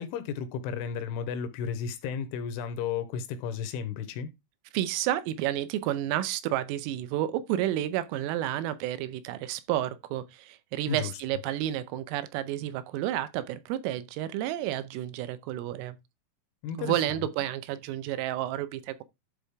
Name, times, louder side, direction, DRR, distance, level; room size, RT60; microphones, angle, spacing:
voice 1, 0.0-4.3 10.9-11.1 16.6-17.0, left 7 dB, 80° left, 3.1 m, -33 dB
voice 2, 4.7-16.0 16.8-19.0, right 13 dB, 85° right, 3.4 m, -31 dB
11.5 x 4.3 x 3.5 m
omnidirectional pair, 5.9 m